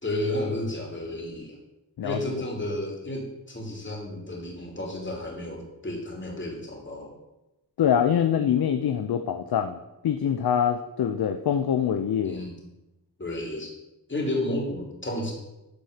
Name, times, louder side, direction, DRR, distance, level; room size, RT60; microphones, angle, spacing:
voice 1, 0.0-1.6 2.0-7.1 12.2-12.5 13.2-13.7 14.1-15.3, left 1 dB, 30° left, 0 dB, 2.9 m, -32 dB
voice 2, 7.8-12.4, left 8 dB, 75° left, 8 dB, 0.6 m, -24 dB
11.5 x 4.2 x 6.6 m, 0.96 s
wide cardioid pair, 85°, 37 cm